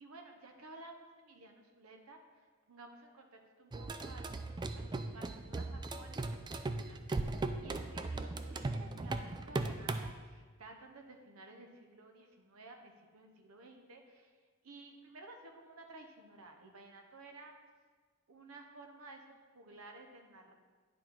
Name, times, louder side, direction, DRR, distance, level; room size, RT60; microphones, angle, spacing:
voice 1, 0.0-4.4 4.7-6.4 6.7-17.5 18.3-20.5, right 2 dB, 80° right, 3 dB, 0.8 m, -54 dB
sound 1, 3.7-10.1, right 2 dB, 20° right, 0.3 m, -38 dB
9.8 x 4.6 x 3.8 m, 1.4 s
head